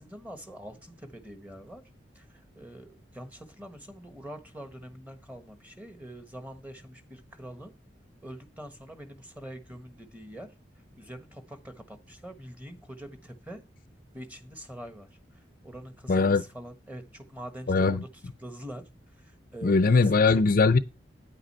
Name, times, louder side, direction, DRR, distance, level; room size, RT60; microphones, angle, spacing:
voice 1, 0.0-1.8 2.1-7.7 8.2-10.5 11.0-13.6 14.1-18.8 19.2-20.4, right 1 dB, 10° right, 1.3 m, -44 dB
voice 2, 16.1-16.4 17.7-18.0 19.6-20.8, left 4 dB, 50° left, 0.5 m, -21 dB
9.5 x 8.0 x 4.3 m
head